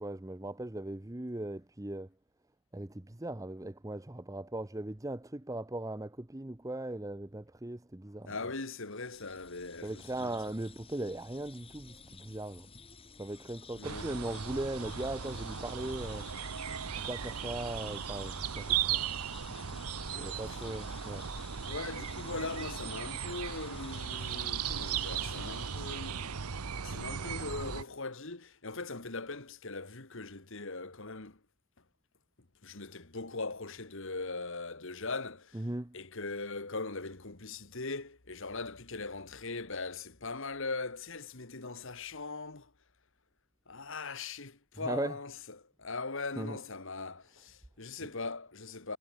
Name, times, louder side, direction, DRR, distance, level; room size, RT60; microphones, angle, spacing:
voice 1, 0.0-2.1 2.7-8.3 9.8-12.7 13.2-16.3 17.0-19.0 20.2-21.3 35.5-36.0 44.8-45.2 46.4-46.6, right 1 dB, 15° right, 0.7 m, -38 dB
voice 2, 8.3-10.5 13.8-14.1 20.1-20.7 21.7-26.3 26.8-31.4 32.6-35.7 35.9-42.7 43.7-49.0, left 3 dB, 60° left, 1.9 m, -40 dB
sound 1, 8.9-26.6, left 4 dB, 25° left, 2.3 m, -52 dB
sound 2, 13.8-27.8, right 8 dB, 85° right, 1.0 m, -37 dB
head